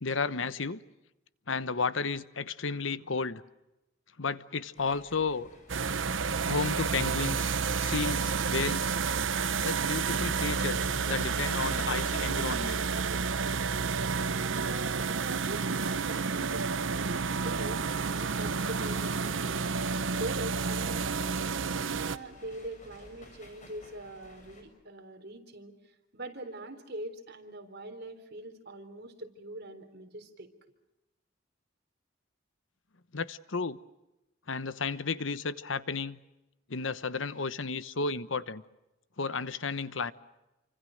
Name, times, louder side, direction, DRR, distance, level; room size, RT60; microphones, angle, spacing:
voice 1, 0.0-0.8 1.5-3.4 4.2-5.5 6.5-7.5 7.8-9.0 9.6-12.8 33.1-33.8 34.5-36.2 36.7-38.6 39.2-40.1, left 4 dB, 70° left, 15 dB, 1.0 m, -33 dB
sound 1, 4.7-24.6, left 1 dB, 40° left, 7.4 m, -53 dB
sound 2, 5.7-22.2, right 5 dB, 75° right, 0.9 m, -30 dB
voice 2, 14.3-19.7 20.1-25.7 26.1-30.5, right 1 dB, 55° right, 6 dB, 3.8 m, -43 dB
29.0 x 25.5 x 6.5 m, 0.97 s
head